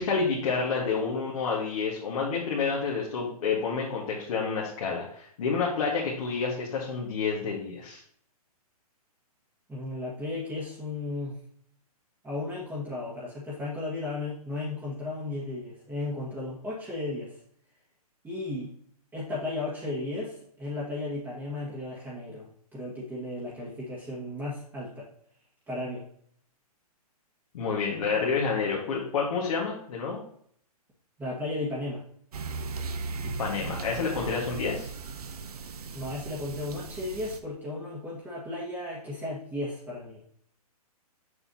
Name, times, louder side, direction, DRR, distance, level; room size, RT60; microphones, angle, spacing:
voice 1, 0.0-8.0 27.5-30.2 33.4-34.9, left 5 dB, 55° left, -3 dB, 1.6 m, -29 dB
voice 2, 9.7-11.4 12.2-17.4 18.2-18.8 19.1-25.1 25.7-26.1 31.2-32.0 35.9-40.2, left 2 dB, 10° right, -7 dB, 1.5 m, -35 dB
sound 1, 32.3-37.4, right 4 dB, 70° right, 0.8 m, -37 dB
6.7 x 5.6 x 2.8 m, 0.63 s
hypercardioid pair, 135°, 20 cm